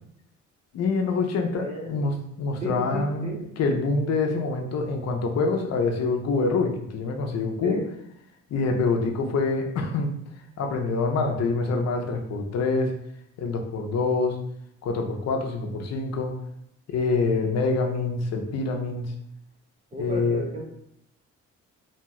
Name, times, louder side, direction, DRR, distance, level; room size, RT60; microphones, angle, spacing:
voice 1, 0.7-7.8 8.5-10.1 10.6-12.9 13.4-14.4 14.8-16.4 16.9-19.1 20.0-20.5, left 3 dB, 60° left, 3 dB, 0.6 m, -26 dB
voice 2, 1.5-2.0 2.6-3.4 7.6-7.9 19.9-20.6, equal, 20° right, -3 dB, 0.6 m, -33 dB
2.7 x 2.3 x 3.0 m, 0.74 s
cardioid pair, 90°, 30 cm